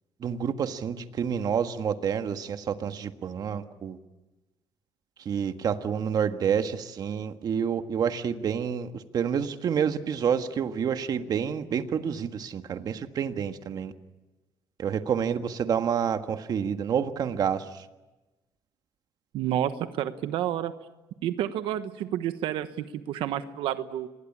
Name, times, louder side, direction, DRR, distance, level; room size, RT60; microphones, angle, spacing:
voice 1, 0.2-4.0 5.2-8.9 9.1-13.9 14.8-17.6, right 7 dB, 50° right, 8 dB, 1.6 m, -28 dB
voice 2, 19.3-20.7 21.2-24.1, right 11 dB, 90° right, 10 dB, 1.1 m, -30 dB
27.5 x 21.5 x 8.7 m, 1.1 s
cardioid pair, 130°, 9 cm